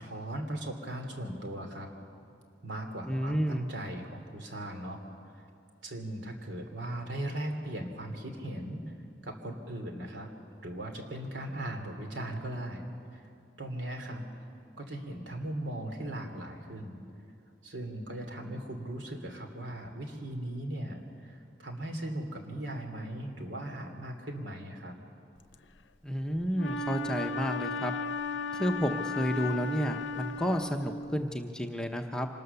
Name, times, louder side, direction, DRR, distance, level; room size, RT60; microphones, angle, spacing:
voice 1, 0.0-1.9 2.6-5.0 5.3-5.4 5.8-8.8 9.2-10.3 10.6-12.9 13.1-13.2 13.6-14.2 14.8-17.0 17.6-25.0, right 1 dB, 75° right, 4 dB, 2.8 m, -38 dB
voice 2, 3.1-3.7 26.0-27.9 28.5-32.3, equal, 5° left, 3 dB, 0.7 m, -31 dB
Wind instrument woodwind instrument, 26.5-31.3, left 3 dB, 80° left, 0.7 m, -35 dB
25.5 x 19.5 x 6.9 m, 2.6 s
head